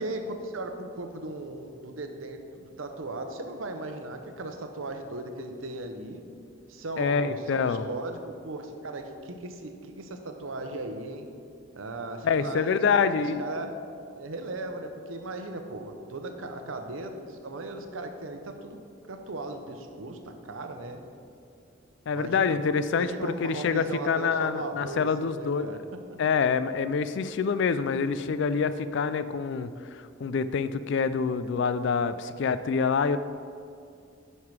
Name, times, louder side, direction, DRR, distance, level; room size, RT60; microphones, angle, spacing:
voice 1, 0.0-6.2 6.7-11.3 11.7-13.7 14.1-18.8 19.1-21.0 22.1-25.8, right 2 dB, 85° right, 6 dB, 0.8 m, -37 dB
voice 2, 7.0-7.8 12.2-13.5 22.1-25.7 26.2-33.2, left 5 dB, 65° left, 14 dB, 0.4 m, -26 dB
9.4 x 5.6 x 4.7 m, 2.4 s
head